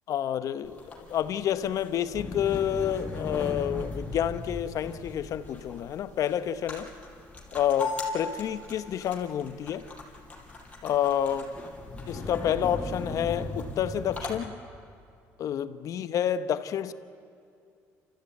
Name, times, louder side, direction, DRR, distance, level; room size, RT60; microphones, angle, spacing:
voice 1, 0.1-6.9 7.5-9.9 10.8-11.5 12.1-14.6 15.4-16.9, left 10 dB, 60° left, 1.0 m, -29 dB
sound 1, 0.6-14.4, left 3 dB, 20° left, 5.6 m, -38 dB
28.5 x 14.5 x 9.3 m
supercardioid pair, 80°, 6 cm